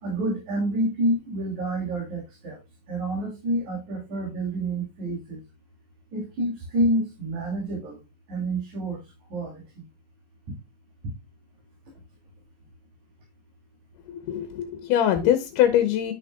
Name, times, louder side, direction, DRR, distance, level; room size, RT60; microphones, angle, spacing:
voice 1, 0.0-2.6 2.9-5.4 6.1-8.0 8.3-9.0 9.3-9.8, right 1 dB, 55° right, 4.2 m, -28 dB
voice 2, 14.1-16.1, left 10 dB, 75° left, 2.4 m, -23 dB
11.0 x 6.6 x 2.3 m
omnidirectional pair, 4.0 m